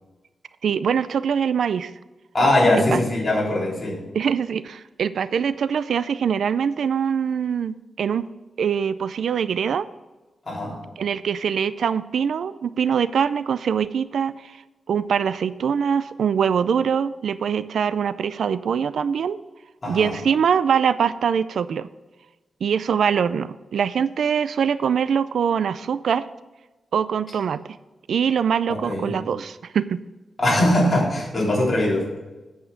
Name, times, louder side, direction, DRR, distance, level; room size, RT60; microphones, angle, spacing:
voice 1, 0.6-1.9 2.9-3.0 4.1-8.3 8.6-9.9 11.0-14.6 14.9-19.4 19.9-21.9 22.6-26.2 26.9-27.6 28.1-30.0, right 7 dB, 80° right, 15 dB, 0.4 m, -23 dB
voice 2, 2.3-4.0 10.4-10.8 19.8-20.1 28.7-29.1 30.4-32.1, left 1 dB, 30° left, -4 dB, 3.5 m, -21 dB
8.7 x 8.0 x 5.1 m, 1.1 s
wide cardioid pair, 140°, 0 cm